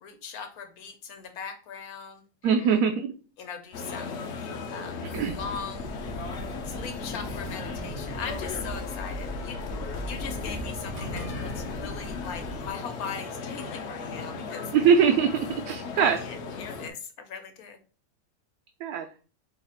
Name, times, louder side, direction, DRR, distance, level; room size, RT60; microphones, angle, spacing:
voice 1, 0.0-2.8 3.4-4.2 4.7-5.9 6.6-9.6 10.0-14.7 16.0-17.8, left 6 dB, 75° left, 6 dB, 1.3 m, -40 dB
voice 2, 2.4-3.1 5.1-5.3 14.7-16.2 18.8-19.1, right 7 dB, 75° right, 5 dB, 1.1 m, -22 dB
sound 1, 3.7-16.9, left 4 dB, 60° left, 0.8 m, -37 dB
sound 2, 5.1-12.7, equal, 25° left, 0.5 m, -39 dB
sound 3, 10.9-12.2, equal, 50° right, 0.3 m, -41 dB
4.7 x 2.4 x 4.2 m, 0.35 s
omnidirectional pair, 1.6 m